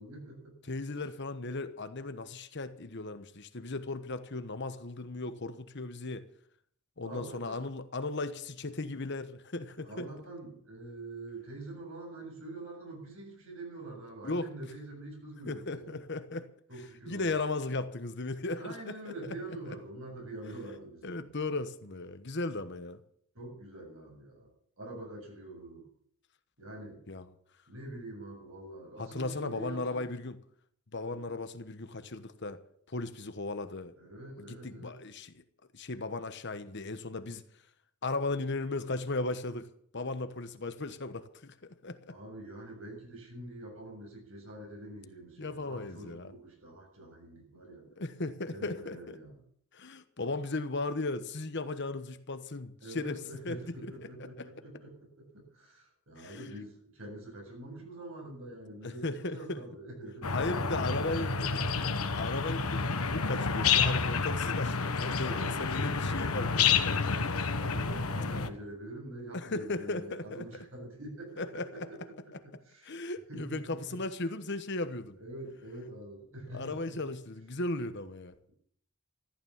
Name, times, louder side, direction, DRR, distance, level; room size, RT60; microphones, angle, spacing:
voice 1, 0.0-0.5 1.0-1.1 7.0-7.6 9.8-16.0 16.7-17.4 18.5-21.3 23.3-24.5 24.8-25.9 26.6-27.0 27.7-30.1 31.1-31.3 34.0-35.0 42.1-47.8 48.4-49.4 52.8-55.3 55.5-62.2 65.2-65.9 67.5-73.0 73.3-74.0 75.2-77.0, right 1 dB, 65° right, 7.4 m, -45 dB
voice 2, 0.7-6.3 7.0-10.1 14.2-14.7 15.5-16.5 17.1-19.1 21.0-23.0 27.1-27.3 29.0-30.4 30.9-32.6 32.9-33.9 34.4-35.4 35.7-37.4 38.0-39.7 39.9-42.2 45.4-46.3 48.0-49.2 49.7-53.2 53.4-53.6 54.0-54.5 56.2-56.5 58.8-59.6 60.3-61.3 62.2-67.2 69.3-70.5 71.4-71.9 72.8-75.2 76.5-78.3, left 2 dB, 55° left, 1.2 m, -36 dB
sound 1, 60.2-68.5, left 5 dB, 85° left, 1.3 m, -29 dB
14.5 x 12.0 x 7.3 m
head